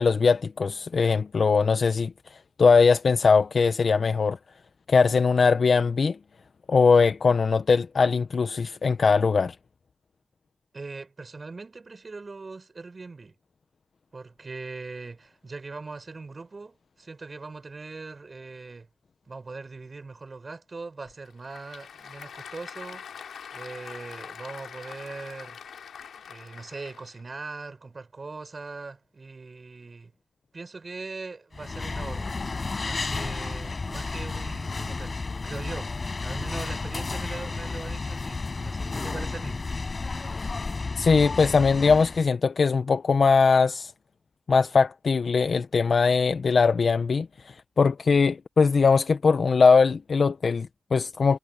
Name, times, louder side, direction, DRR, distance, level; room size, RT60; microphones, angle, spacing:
voice 1, 0.0-4.4 4.9-6.2 6.7-9.5 41.0-43.9 44.5-51.4, left 5 dB, 65° left, 1.0 m, -21 dB
voice 2, 10.7-13.4 14.1-18.9 19.3-23.1 23.5-25.6 26.3-30.1 30.5-32.4 32.8-35.9 36.2-39.6, right 3 dB, 50° right, 7.5 m, -40 dB
Applause / Crowd, 21.1-27.2, left 7 dB, 90° left, 3.3 m, -43 dB
sound 1, 31.5-42.3, left 3 dB, 50° left, 7.1 m, -32 dB
cardioid pair, 40°, 0 cm